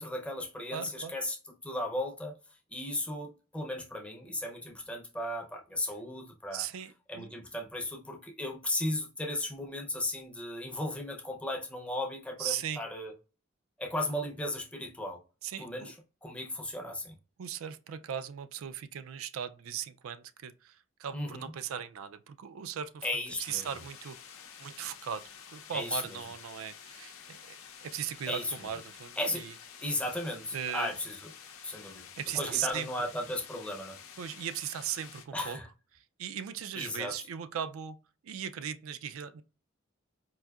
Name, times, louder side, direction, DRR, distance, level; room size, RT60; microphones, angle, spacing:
voice 1, 0.0-1.4 1.6-2.3 2.7-6.7 7.1-13.1 13.8-15.2 15.6-15.9 16.2-17.2 21.1-21.5 23.0-23.7 25.7-26.2 28.3-28.5 29.2-29.5 29.8-31.3 31.6-32.1 32.3-34.0 35.3-35.7 36.8-37.1, left 1 dB, 5° left, 0.5 m, -35 dB
voice 2, 0.7-1.1 6.5-7.3 12.4-12.8 15.4-15.9 17.4-23.1 23.4-25.2 25.5-29.5 30.5-30.9 32.2-33.1 34.2-35.6 35.9-38.0 38.2-39.4, right 9 dB, 85° right, 0.3 m, -38 dB
sound 1, 23.4-35.3, left 7 dB, 90° left, 0.6 m, -50 dB
4.6 x 2.6 x 2.3 m
head